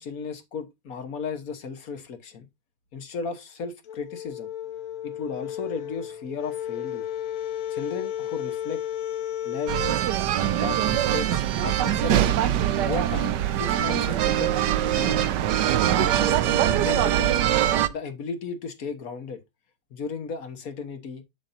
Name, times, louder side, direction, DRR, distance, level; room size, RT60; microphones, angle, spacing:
voice 1, 0.0-2.5 2.9-4.5 5.0-7.0 7.7-8.8 9.4-9.8 10.6-12.4 12.8-15.3 15.9-16.5 16.8-17.4 17.9-19.4 19.9-21.2, left 5 dB, 50° left, 1.4 m, -35 dB
sound 1, 3.8-10.0, left 11 dB, 90° left, 1.7 m, -33 dB
sound 2, 9.7-17.9, right 11 dB, 70° right, 1.1 m, -23 dB
7.2 x 7.2 x 2.6 m
omnidirectional pair, 2.2 m